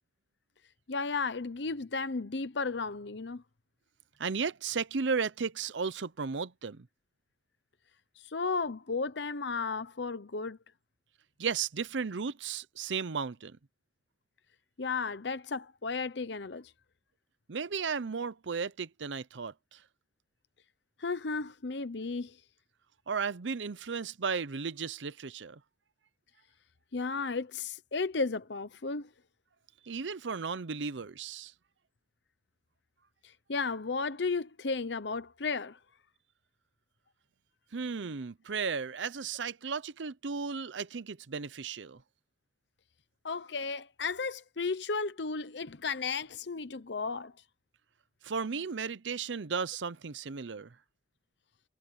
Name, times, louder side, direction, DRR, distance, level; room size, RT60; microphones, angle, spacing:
voice 1, 0.9-3.4 8.3-10.6 14.8-16.7 21.0-22.4 26.9-29.1 33.5-35.8 43.2-47.3, left 4 dB, 65° left, 0.8 m, -34 dB
voice 2, 4.2-6.9 11.4-13.6 17.5-19.8 23.1-25.6 29.8-31.5 37.7-42.0 48.2-50.7, right 5 dB, 80° right, 0.7 m, -35 dB
head